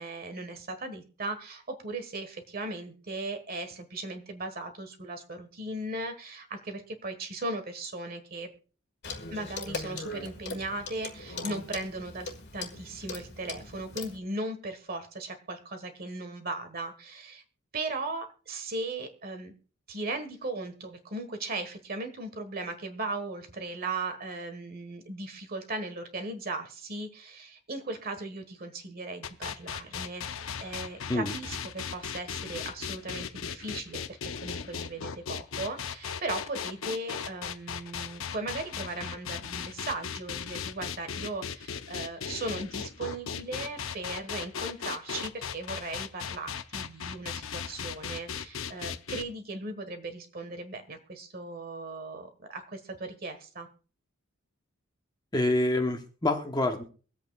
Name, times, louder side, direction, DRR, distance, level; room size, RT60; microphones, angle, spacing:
voice 1, 0.0-8.5 9.3-17.4 17.7-19.5 19.9-53.7, right 2 dB, 45° right, 8 dB, 1.5 m, -37 dB
Clock, 9.0-14.2, left 3 dB, 55° left, 1.7 m, -40 dB
sound 1, 29.2-49.2, left 7 dB, 70° left, 0.6 m, -37 dB
voice 2, 55.3-56.8, left 1 dB, 20° left, 4 dB, 1.0 m, -27 dB
23.5 x 8.1 x 2.4 m, 0.38 s
head